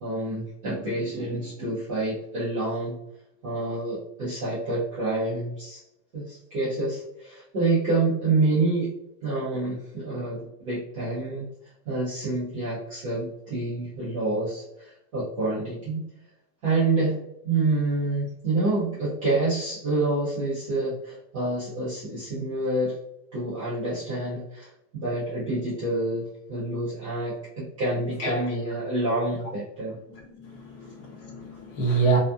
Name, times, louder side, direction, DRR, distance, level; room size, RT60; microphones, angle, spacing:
voice 1, 0.0-3.0 3.4-5.8 6.1-8.9 9.2-11.5 11.9-16.1 16.6-17.2 17.4-23.0 23.3-30.0, right 2 dB, 25° right, -9 dB, 0.3 m, -27 dB
voice 2, 30.1-32.2, right 4 dB, 35° left, 0 dB, 0.6 m, -27 dB
2.6 x 2.2 x 2.2 m, 0.81 s
supercardioid pair, 155°, 48 cm